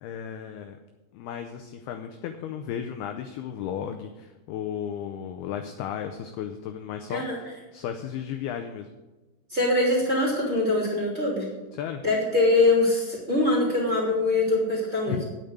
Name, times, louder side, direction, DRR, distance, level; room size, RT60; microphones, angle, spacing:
voice 1, 0.0-0.8 1.1-8.9 11.7-12.0 15.1-15.2, left 9 dB, 85° left, 6 dB, 2.2 m, -34 dB
voice 2, 9.5-11.5 12.0-15.2, left 2 dB, 20° right, -4 dB, 2.4 m, -23 dB
9.1 x 8.9 x 8.0 m, 1.1 s
omnidirectional pair, 5.3 m